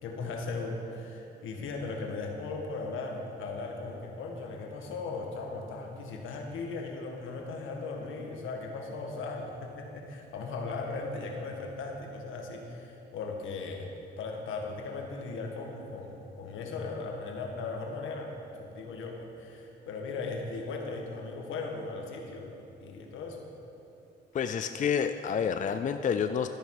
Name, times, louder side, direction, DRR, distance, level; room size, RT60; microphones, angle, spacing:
voice 1, 0.0-23.5, left 3 dB, 80° left, 2 dB, 1.6 m, -38 dB
voice 2, 24.3-26.5, left 7 dB, 40° left, 9 dB, 0.5 m, -29 dB
12.5 x 10.5 x 4.8 m, 2.9 s
cardioid pair, 90°, 20 cm